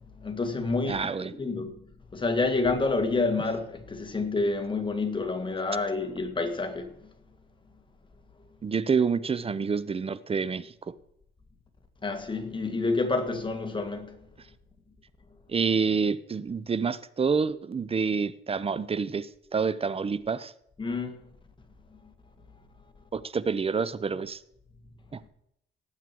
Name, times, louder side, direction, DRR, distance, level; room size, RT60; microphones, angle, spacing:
voice 1, 0.2-1.8 2.1-7.1 12.0-14.2 20.8-21.2, left 3 dB, 25° left, 2.0 m, -28 dB
voice 2, 0.9-1.3 8.6-10.7 15.5-20.5 23.1-24.4 25.1-25.2, right 5 dB, 30° right, 0.7 m, -28 dB
18.0 x 7.8 x 4.6 m
cardioid pair, 90°, 20 cm